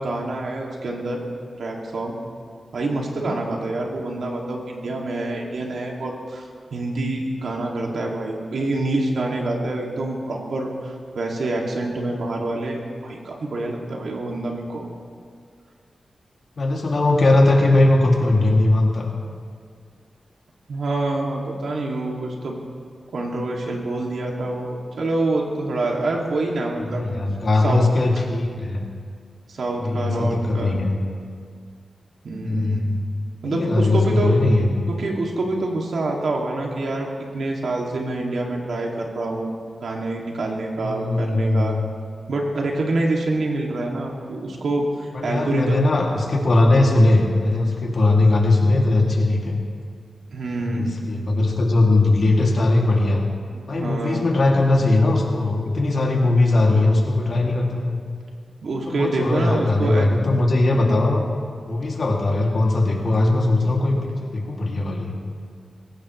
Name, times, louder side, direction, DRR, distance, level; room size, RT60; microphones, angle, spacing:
voice 1, 0.0-2.2 2.7-14.9 20.7-22.6 23.1-27.1 27.6-27.9 29.5-30.8 32.2-32.9 33.4-34.4 34.9-37.1 37.3-41.8 42.3-45.8 46.7-46.9 50.3-51.0 53.5-54.2 58.6-60.1 60.7-60.9, right 2 dB, 80° right, -1 dB, 2.4 m, -26 dB
voice 2, 16.6-19.1 26.8-28.8 29.8-30.9 32.4-33.0 33.4-34.7 40.8-41.8 45.1-49.6 50.6-53.2 53.7-58.0 58.9-61.2 61.7-65.1, left 2 dB, 60° left, -1 dB, 2.5 m, -19 dB
22.0 x 17.0 x 3.2 m, 2.1 s
wide cardioid pair, 90°, 0 cm